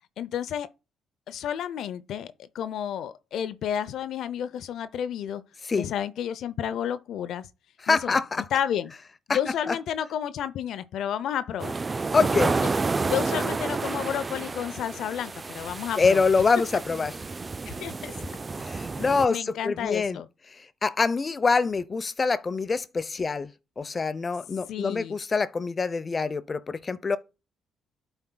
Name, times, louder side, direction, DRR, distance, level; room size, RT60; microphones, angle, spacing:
voice 1, 0.2-0.7 1.3-5.4 5.8-7.5 7.9-8.2 8.5-8.9 9.3-11.7 13.0-16.2 17.6-18.2 19.0-20.3 24.7-25.2, left 9 dB, 75° left, 0.6 m, -31 dB
voice 2, 7.8-8.5 9.3-9.4 9.7-9.8 12.1-12.5 16.0-17.2 18.6-20.2 20.5-23.5 23.8-27.2, left 4 dB, 35° left, 0.7 m, -25 dB
sound 1, 11.6-19.3, right 3 dB, 30° right, 0.3 m, -30 dB
12.0 x 4.5 x 2.3 m
supercardioid pair, 65°, 0 cm